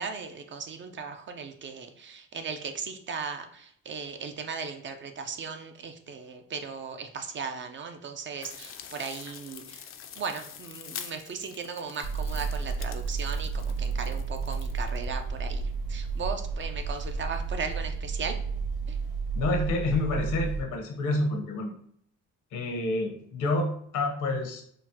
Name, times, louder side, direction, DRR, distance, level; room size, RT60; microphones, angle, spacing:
voice 1, 0.0-18.4 18.9-19.0, right 5 dB, 40° right, 7 dB, 0.4 m, -37 dB
sound 1, 8.4-15.0, left 8 dB, 45° left, 0.4 m, -45 dB
sound 2, 12.0-20.6, right 4 dB, 70° right, 1.2 m, -32 dB
voice 2, 19.3-21.7 22.5-24.6, left 2 dB, 80° left, 3 dB, 0.8 m, -28 dB
3.9 x 2.0 x 2.7 m, 0.66 s
cardioid pair, 90°, 30 cm